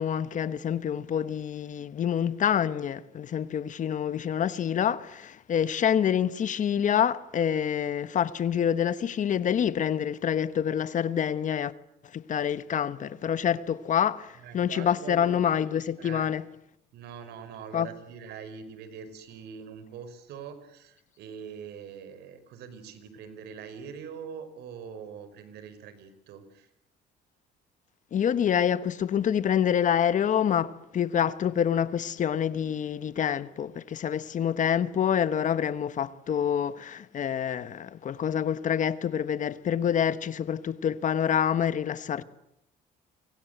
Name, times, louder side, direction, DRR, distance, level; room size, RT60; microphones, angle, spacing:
voice 1, 0.0-11.7 12.1-16.4 17.7-17.9 28.1-42.2, left 9 dB, 50° left, 1.3 m, -27 dB
voice 2, 14.4-15.6 16.0-16.3 16.9-26.7, right 7 dB, 80° right, 5.0 m, -43 dB
29.0 x 25.0 x 8.1 m
cardioid pair, 110°, 17 cm